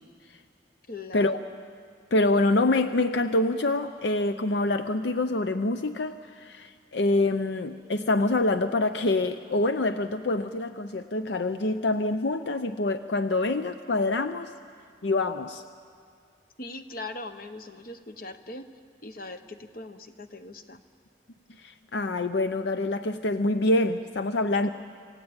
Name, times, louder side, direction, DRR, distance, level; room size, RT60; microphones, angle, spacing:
voice 1, 0.9-1.4 16.6-18.7 19.0-20.8 24.6-24.7, left 2 dB, 55° left, 9 dB, 1.2 m, -40 dB
voice 2, 2.1-14.5 15.0-15.6 21.6-24.7, left 2 dB, 80° left, 9 dB, 0.6 m, -26 dB
27.0 x 17.0 x 8.8 m, 2.3 s
head